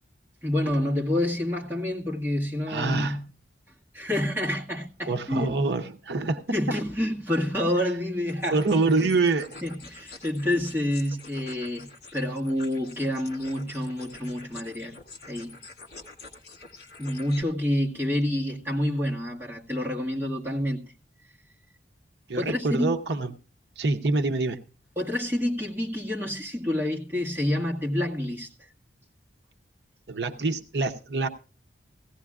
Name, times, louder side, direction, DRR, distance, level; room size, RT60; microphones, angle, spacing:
voice 1, 0.4-3.2 3.9-5.5 6.5-8.6 9.0-9.1 9.6-15.0 15.3-15.5 17.0-20.8 22.4-23.0 25.0-28.7, left 1 dB, 10° right, 1.8 m, -28 dB
voice 2, 2.7-3.2 5.1-6.8 8.5-9.6 22.3-23.3 23.8-24.6 30.1-31.3, right 3 dB, 65° right, 0.7 m, -26 dB
sound 1, 8.3-17.4, left 3 dB, 55° left, 2.3 m, -47 dB
17.5 x 15.5 x 2.4 m
head